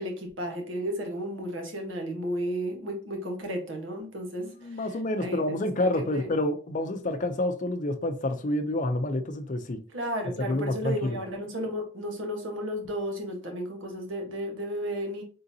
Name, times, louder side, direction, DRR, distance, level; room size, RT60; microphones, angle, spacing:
voice 1, 0.0-4.9 5.2-5.6 5.9-6.3 9.9-15.2, equal, 75° right, 2 dB, 1.2 m, -33 dB
voice 2, 4.4-9.8 10.5-11.2, left 1 dB, 40° left, 6 dB, 0.6 m, -28 dB
3.9 x 3.8 x 2.7 m, 0.39 s
head